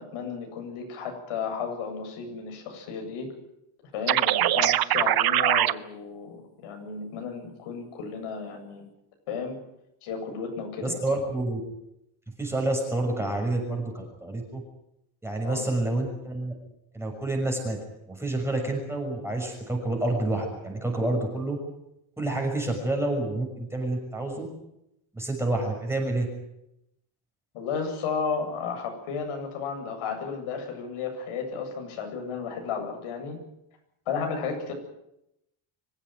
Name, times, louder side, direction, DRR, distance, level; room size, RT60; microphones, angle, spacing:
voice 1, 0.0-3.3 3.9-8.8 9.3-9.6 10.0-11.0 15.4-15.7 27.5-33.4 34.1-34.7, left 5 dB, 80° left, 4 dB, 7.9 m, -33 dB
sound 1, 4.1-5.7, right 13 dB, 45° right, 0.9 m, -22 dB
voice 2, 10.8-11.6 12.4-14.6 15.2-16.5 16.9-17.8 18.1-21.6 22.2-24.5 25.1-26.3, right 2 dB, 5° right, 2 dB, 6.3 m, -28 dB
25.0 x 16.0 x 9.5 m, 0.84 s
cardioid pair, 170°, 49 cm